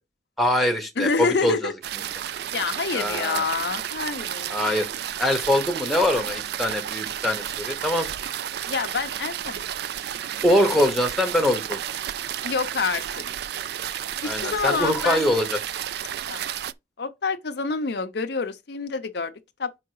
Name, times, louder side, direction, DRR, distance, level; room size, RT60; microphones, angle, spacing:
voice 1, 0.4-1.7 2.9-3.4 4.5-4.9 5.2-8.1 10.4-11.8 14.2-15.6, left 1 dB, ahead, 1.1 m, -23 dB
voice 2, 1.0-1.7 2.5-4.5 8.7-9.7 12.4-13.2 14.2-15.2 16.3-16.5 17.0-19.3 19.6-19.7, left 4 dB, 65° left, 0.6 m, -27 dB
sound 1, 1.8-16.7, right 10 dB, 60° right, 0.3 m, -32 dB
5.7 x 4.6 x 4.7 m
head